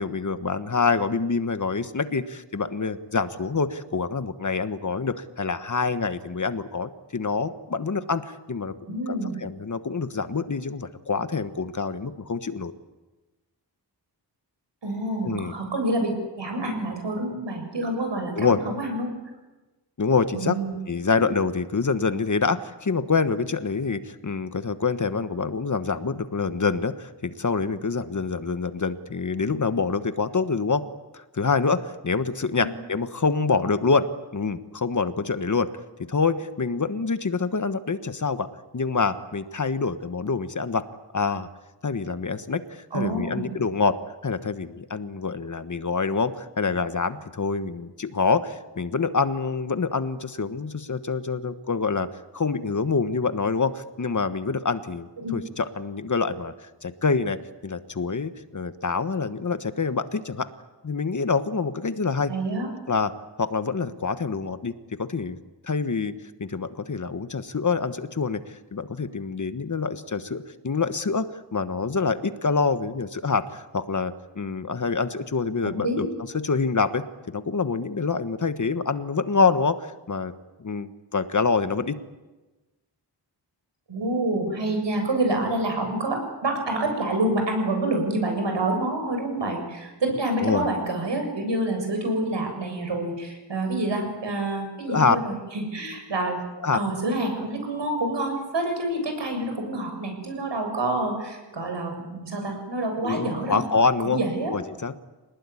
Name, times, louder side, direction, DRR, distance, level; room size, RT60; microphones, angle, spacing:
voice 1, 0.0-12.7 15.2-15.5 18.4-18.6 20.0-20.6 20.9-30.8 31.1-34.1 34.3-35.7 36.1-38.5 38.7-40.8 41.1-41.5 41.8-44.0 44.2-52.1 52.3-57.4 57.6-60.5 60.8-62.3 62.9-63.1 63.4-64.7 65.0-65.4 65.6-66.1 66.4-71.2 71.5-76.1 76.3-80.3 80.6-82.0 90.4-90.7 94.9-95.2 96.6-96.8 103.0-104.2 104.5-104.9, left 4 dB, 45° left, 11 dB, 1.3 m, -26 dB
voice 2, 8.8-9.4 14.8-16.1 16.4-19.1 20.3-20.7 21.1-21.3 32.6-32.7 42.9-43.5 55.2-55.3 62.3-62.7 75.8-76.0 83.9-96.4 96.7-103.6 104.0-104.5, right 2 dB, 75° right, 4 dB, 7.1 m, -27 dB
26.0 x 19.5 x 9.9 m, 1.1 s
wide cardioid pair, 125°, 43 cm